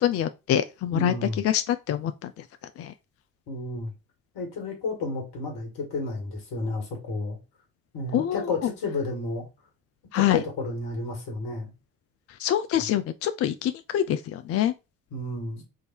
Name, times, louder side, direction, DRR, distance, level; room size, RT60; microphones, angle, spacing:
voice 1, 0.0-1.1 1.4-2.3 2.8-2.9 8.1-8.4 10.1-10.4 12.4-14.7, left 11 dB, 35° left, 0.4 m, -25 dB
voice 2, 0.9-1.4 3.5-3.9 4.3-7.4 7.9-9.5 10.1-11.7 12.7-12.9 15.1-15.6, left 3 dB, 60° left, 2.0 m, -31 dB
3.8 x 2.6 x 4.4 m
figure-of-eight pair, 45°, 44 cm